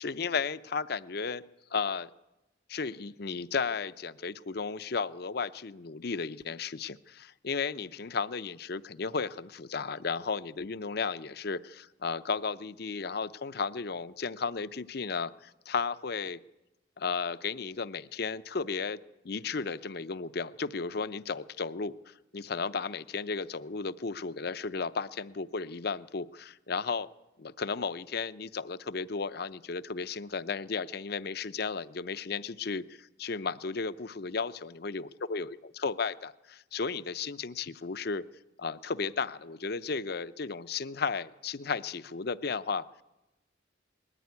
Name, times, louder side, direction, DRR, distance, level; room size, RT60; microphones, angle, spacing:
voice 1, 0.0-1.4 1.7-2.1 2.7-16.4 17.0-19.0 19.2-27.1 27.4-38.2 38.6-43.0, left 5 dB, 55° left, 15 dB, 0.6 m, -34 dB
20.5 x 14.0 x 9.5 m, 0.99 s
head